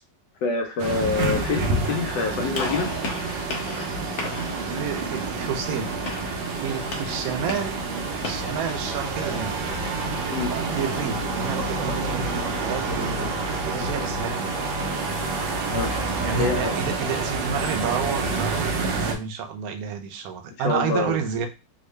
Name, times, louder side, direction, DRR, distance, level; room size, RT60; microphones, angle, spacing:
voice 1, 0.4-2.9 10.3-10.5 15.7-16.0 16.4-16.8 20.6-21.2, left 4 dB, 80° left, 1.3 m, -26 dB
sound 1, 0.8-19.2, right 3 dB, 85° right, 1.4 m, -28 dB
Gunshot gunfire, 2.5-8.6, left 3 dB, 60° left, 0.7 m, -36 dB
sound 2, 3.9-18.2, right 1 dB, 50° right, 0.6 m, -38 dB
voice 2, 4.7-5.9 6.5-7.8 8.2-9.6 10.7-13.3 13.6-14.5 14.8-15.1 16.2-21.5, right 6 dB, 65° right, 0.9 m, -30 dB
3.7 x 2.2 x 3.2 m
omnidirectional pair, 1.9 m